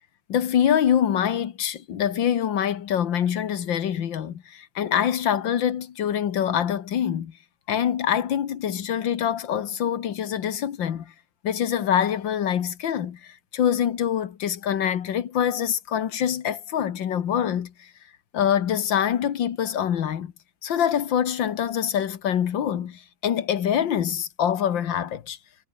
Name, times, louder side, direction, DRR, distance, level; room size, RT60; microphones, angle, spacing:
voice 1, 0.3-7.3 7.7-11.1 11.4-17.9 18.3-20.3 20.6-25.4, left 9 dB, 80° left, 2.1 m, -25 dB
omnidirectional pair, 2.0 m